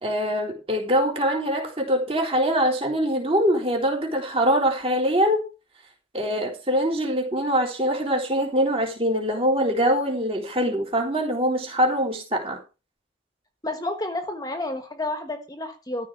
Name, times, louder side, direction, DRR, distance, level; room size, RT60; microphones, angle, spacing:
voice 1, 0.0-5.4 6.1-12.6, equal, 30° right, 2 dB, 3.7 m, -23 dB
voice 2, 13.6-16.1, left 2 dB, 20° left, 7 dB, 1.3 m, -30 dB
13.5 x 4.8 x 7.3 m, 0.31 s
head